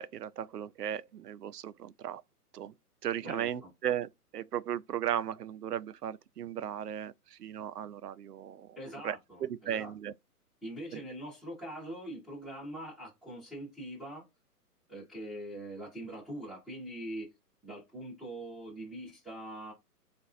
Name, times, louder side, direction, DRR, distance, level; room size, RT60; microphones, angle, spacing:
voice 1, 0.0-2.2 2.5-2.7 3.0-8.8 9.0-10.1 10.9-11.0, right 10 dB, 80° right, 0.5 m, -36 dB
voice 2, 3.2-3.7 8.8-9.9 10.6-14.3 14.9-17.3 17.6-19.7, right 1 dB, ahead, 0.6 m, -43 dB
3.8 x 2.5 x 2.4 m
figure-of-eight pair, 130°, 47 cm